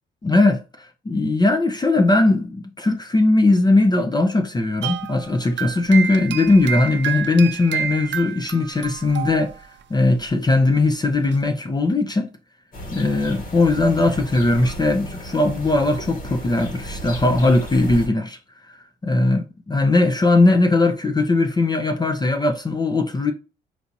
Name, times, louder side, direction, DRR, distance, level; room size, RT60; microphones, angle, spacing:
voice 1, 0.2-9.5 9.9-12.3 12.9-18.4 19.0-23.3, left 2 dB, 20° left, 0.6 m, -19 dB
sound 1, 4.8-9.8 10.1-10.3 11.3-11.4, right 8 dB, 65° right, 0.6 m, -29 dB
sound 2, 12.7-18.1, equal, 45° left, 1.4 m, -34 dB
4.6 x 2.7 x 2.6 m
cardioid pair, 90°, 20 cm